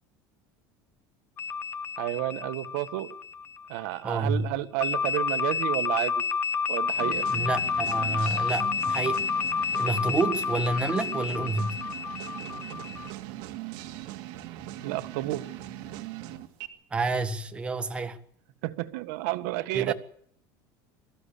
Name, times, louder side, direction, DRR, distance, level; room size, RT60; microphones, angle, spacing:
sound 1, 1.4-3.9 4.8-13.1, left 6 dB, 25° left, 1.0 m, -30 dB
voice 1, 2.0-3.2 3.7-6.1 6.7-7.3 14.8-15.5 18.6-19.9, right 17 dB, 85° right, 1.6 m, -31 dB
voice 2, 4.0-4.5 7.3-9.2 9.8-11.8 16.9-18.2 19.7-19.9, right 3 dB, 10° right, 1.5 m, -29 dB
sound 2, 7.0-16.7, right 13 dB, 60° right, 2.5 m, -40 dB
22.5 x 14.5 x 8.6 m
cardioid pair, 175°, 9 cm